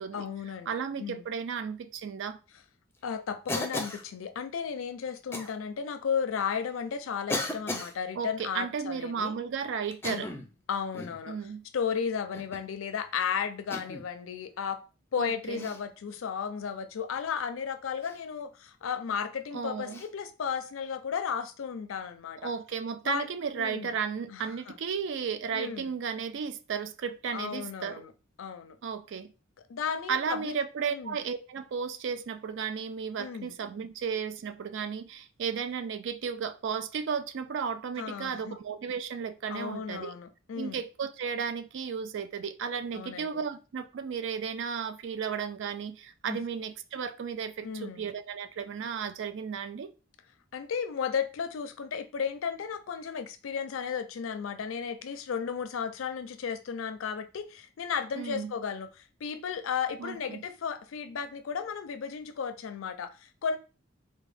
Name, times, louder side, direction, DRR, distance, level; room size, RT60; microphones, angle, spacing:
voice 1, 0.1-1.2 3.0-9.3 10.0-10.3 10.7-11.4 11.7-14.8 15.1-22.5 23.0-23.3 23.6-24.0 24.3-24.8 25.5-25.9 27.3-28.1 28.4-28.8 29.7-30.5 30.9-31.2 33.2-33.5 38.0-38.6 39.5-40.8 42.9-43.4 46.2-46.4 47.6-48.1 50.5-63.6, left 6 dB, 75° left, 0.4 m, -34 dB
voice 2, 0.7-2.4 8.2-10.3 11.3-11.6 15.2-15.7 19.5-20.0 22.4-28.0 28.8-29.3 30.1-40.1 40.6-49.9 58.2-58.5 60.0-60.4, right 6 dB, 65° right, 0.4 m, -34 dB
Cough, 3.5-4.1 5.3-5.5 6.4-6.5 7.3-7.9 9.9-10.5 10.9-11.2 12.3-12.7 13.7-14.1 15.5-15.8 18.0-18.2 19.9-20.1, left 2 dB, 10° left, 0.4 m, -35 dB
3.5 x 2.2 x 3.3 m
head